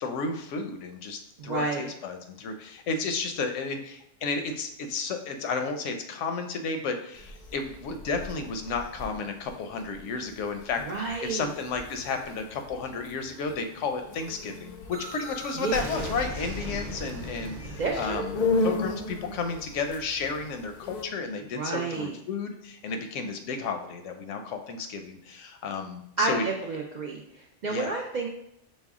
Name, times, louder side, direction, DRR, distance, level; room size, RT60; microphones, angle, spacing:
voice 1, 0.0-26.4 27.7-28.0, left 4 dB, 85° left, 6 dB, 0.9 m, -32 dB
voice 2, 1.4-1.9 10.9-11.5 15.5-15.9 17.8-18.3 21.6-22.2 26.2-28.3, right 4 dB, 65° right, -1 dB, 0.4 m, -30 dB
sound 1, 7.1-21.0, left 3 dB, 60° left, 0.5 m, -36 dB
sound 2, 14.9-20.6, right 2 dB, 85° right, 1.0 m, -40 dB
5.4 x 2.1 x 3.5 m, 0.75 s
omnidirectional pair, 1.2 m